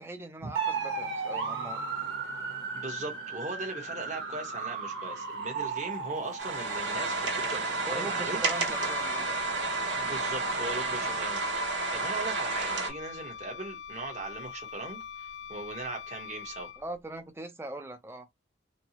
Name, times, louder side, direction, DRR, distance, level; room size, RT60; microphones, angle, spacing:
voice 1, 0.0-1.8 7.8-9.3 16.8-18.3, right 2 dB, 10° right, 0.4 m, -40 dB
sound 1, 0.6-11.2, right 5 dB, 85° right, 1.2 m, -37 dB
voice 2, 2.7-8.4 10.0-16.7, right 3 dB, 35° right, 1.0 m, -39 dB
sound 2, 6.4-12.9, right 3 dB, 65° right, 1.3 m, -31 dB
Wind instrument woodwind instrument, 8.7-17.0, left 7 dB, 75° left, 0.5 m, -43 dB
4.2 x 2.0 x 2.8 m
head